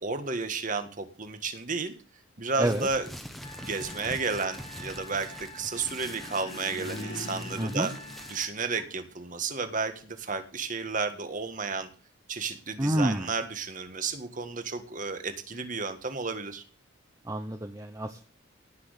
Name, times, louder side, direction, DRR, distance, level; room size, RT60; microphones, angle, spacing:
voice 1, 0.0-1.9 2.4-3.1 3.6-7.9 8.3-11.9 12.3-16.6, right 4 dB, 40° right, 8 dB, 1.7 m, -32 dB
sound 1, 2.5-8.5, equal, ahead, 1.3 m, -44 dB
voice 2, 2.6-2.9 7.6-7.9 12.8-13.3 17.2-18.2, right 1 dB, 15° right, 7 dB, 0.9 m, -28 dB
Trumpet, 3.4-8.5, left 1 dB, 25° left, 2.3 m, -47 dB
sound 2, 5.5-9.1, left 1 dB, 75° left, 3.5 m, -42 dB
17.5 x 6.3 x 8.1 m, 0.40 s
head